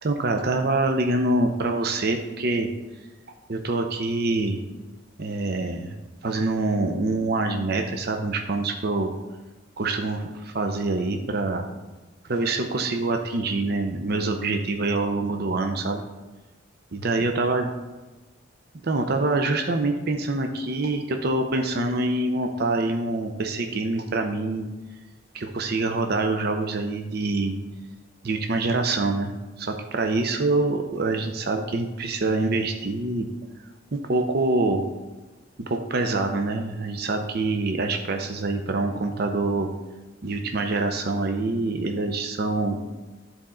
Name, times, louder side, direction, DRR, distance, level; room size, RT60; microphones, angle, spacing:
voice 1, 0.0-2.7 3.5-4.6 5.2-5.9 6.2-9.1 9.8-11.7 12.3-16.0 16.9-17.7 18.8-24.7 25.3-27.5 28.2-29.3 29.6-33.3 33.9-34.8 35.6-39.7 40.2-42.8, right 2 dB, 50° right, 5 dB, 0.6 m, -25 dB
12.5 x 4.2 x 3.8 m, 1.2 s
head